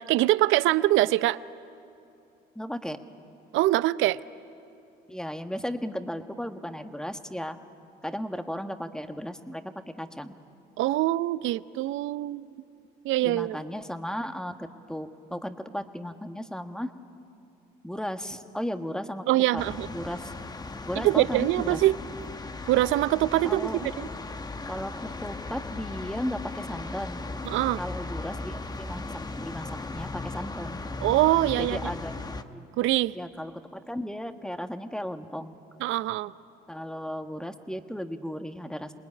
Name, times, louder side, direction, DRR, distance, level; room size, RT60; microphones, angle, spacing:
voice 1, 0.0-1.4 3.5-4.2 10.8-12.5 13.0-13.6 19.3-19.9 20.9-22.0 22.7-24.1 27.5-27.8 31.0-31.8 32.8-33.1 35.8-36.3, right 16 dB, 70° right, 17 dB, 0.6 m, -24 dB
voice 2, 2.5-3.0 5.1-7.6 8.0-9.6 10.0-10.3 13.2-14.5 14.9-16.9 17.8-19.2 19.5-19.6 19.9-20.3 20.8-21.8 23.4-23.9 24.6-24.9 25.2-27.2 27.8-30.8 31.6-32.6 33.1-35.5 36.7-38.9, equal, 5° left, 7 dB, 1.6 m, -35 dB
sound 1, 19.6-32.4, left 3 dB, 20° left, 1.1 m, -37 dB
27.0 x 20.0 x 9.8 m, 2.7 s
supercardioid pair, 75°, 21 cm